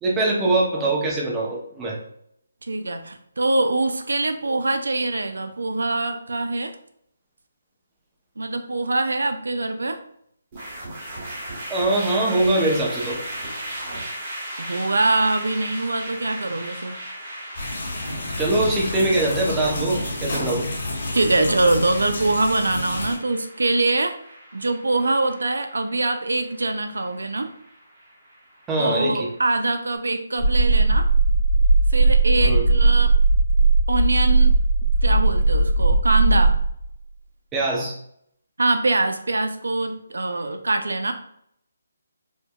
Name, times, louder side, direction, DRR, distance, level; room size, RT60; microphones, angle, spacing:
voice 1, 0.0-2.0 11.7-13.2 18.4-20.7 28.7-29.3 32.4-32.7 37.5-37.9, right 2 dB, 10° right, -3 dB, 0.6 m, -22 dB
voice 2, 2.6-6.8 8.4-10.0 14.7-17.0 21.1-24.2 24.5-27.5 28.8-31.1 31.9-33.1 33.9-34.5 35.0-36.5 38.6-41.1, right 2 dB, 85° right, 8 dB, 0.4 m, -23 dB
sound 1, 10.5-29.8, right 1 dB, 30° right, 1.1 m, -37 dB
sound 2, 17.6-23.2, left 1 dB, 60° left, 1.3 m, -29 dB
sound 3, 30.4-36.9, right 3 dB, 40° left, 0.8 m, -18 dB
4.4 x 2.1 x 2.2 m, 0.69 s
hypercardioid pair, 165°, 0 cm